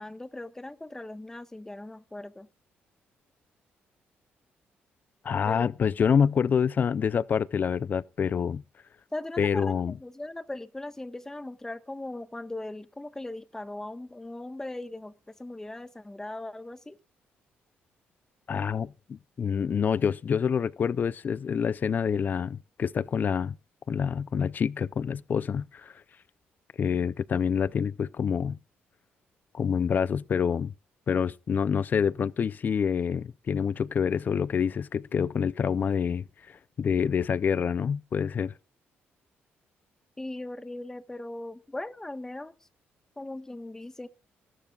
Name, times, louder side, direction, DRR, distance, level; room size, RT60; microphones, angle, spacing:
voice 1, 0.0-2.5 5.4-5.7 9.1-17.0 40.2-42.5 43.2-44.1, left 2 dB, 10° left, 1.3 m, -39 dB
voice 2, 5.2-8.6 9.4-9.9 18.5-23.6 23.9-25.9 26.8-28.6 29.5-30.7 31.1-38.5, left 7 dB, 45° left, 0.5 m, -27 dB
19.5 x 12.5 x 2.4 m
cardioid pair, 100°, 4 cm